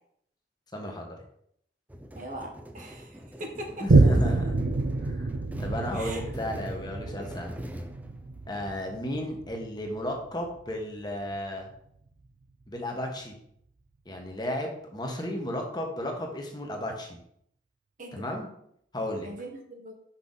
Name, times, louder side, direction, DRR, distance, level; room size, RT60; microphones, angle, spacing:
voice 1, 0.7-1.1 3.8-4.6 5.0-7.5 8.5-11.7 12.7-13.3 14.0-17.2 18.1-18.5 18.9-19.3, left 1 dB, 25° left, 1 dB, 1.3 m, -34 dB
sound 1, 1.9-8.8, equal, 10° right, 0.5 m, -43 dB
voice 2, 2.2-3.9 5.9-6.2 18.0-18.2 19.2-19.9, right 1 dB, 45° right, 2 dB, 1.0 m, -40 dB
Boom, 3.9-10.8 11.3-11.4, right 3 dB, 70° right, 0.6 m, -27 dB
5.8 x 5.7 x 4.0 m, 0.70 s
head